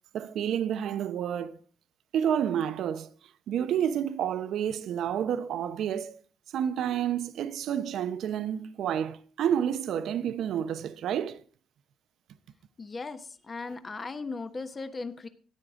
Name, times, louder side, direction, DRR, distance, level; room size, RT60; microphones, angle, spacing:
voice 1, 0.1-1.6 2.1-3.1 3.5-6.2 6.5-11.4 13.6-13.7, right 9 dB, 75° right, 0.7 m, -29 dB
voice 2, 12.8-15.3, left 3 dB, 30° left, 1.1 m, -37 dB
13.0 x 9.9 x 3.6 m
cardioid pair, 90°, 0 cm